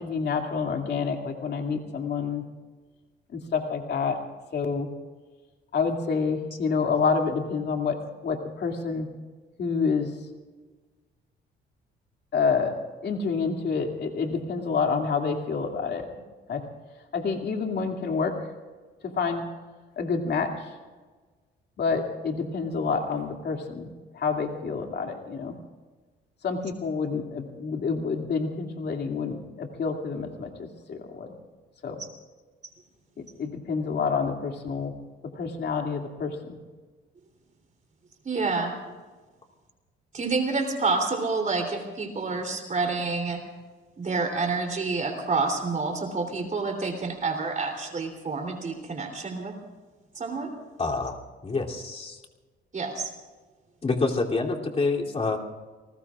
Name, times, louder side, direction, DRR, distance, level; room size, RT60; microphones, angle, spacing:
voice 1, 0.0-2.4 3.3-4.2 4.5-4.9 5.7-8.0 8.2-9.1 9.6-10.1 12.3-12.7 13.0-16.1 16.5-16.6 17.1-18.3 19.0-19.4 20.0-20.6 21.8-23.9 24.2-25.5 26.4-31.3 31.8-32.0 33.2-34.9 35.4-36.6, left 5 dB, 55° left, 3 dB, 2.6 m, -28 dB
voice 2, 38.2-38.7 40.1-43.4 44.0-49.5 50.1-50.5 52.7-53.1, right 4 dB, 40° right, 3 dB, 3.4 m, -28 dB
voice 3, 50.8-51.2 51.4-52.2 53.8-55.4, left 3 dB, 30° left, -1 dB, 3.0 m, -27 dB
29.5 x 19.5 x 2.5 m, 1.3 s
cardioid pair, 90°, 20 cm